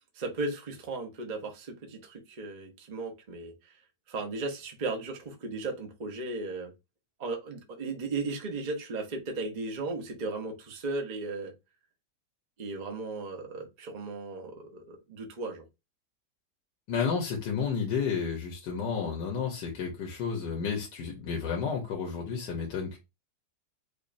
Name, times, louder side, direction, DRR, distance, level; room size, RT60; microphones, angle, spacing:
voice 1, 0.1-3.8 4.1-6.7 7.2-11.5 12.6-15.6, right 3 dB, 40° right, 0.6 m, -36 dB
voice 2, 16.9-23.0, left 6 dB, 75° left, 1.5 m, -31 dB
5.0 x 2.4 x 2.5 m
omnidirectional pair, 1.9 m